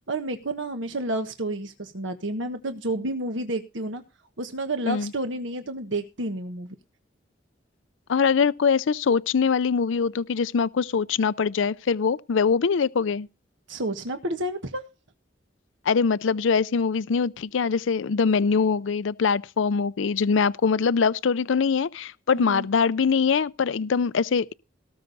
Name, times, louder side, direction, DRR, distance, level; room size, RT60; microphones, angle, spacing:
voice 1, 0.1-4.0 4.4-6.7 13.7-14.8 22.3-22.7, right 1 dB, 75° right, 1.4 m, -30 dB
voice 2, 8.1-13.3 15.9-24.5, left 5 dB, 80° left, 0.5 m, -23 dB
18.5 x 6.7 x 4.0 m
head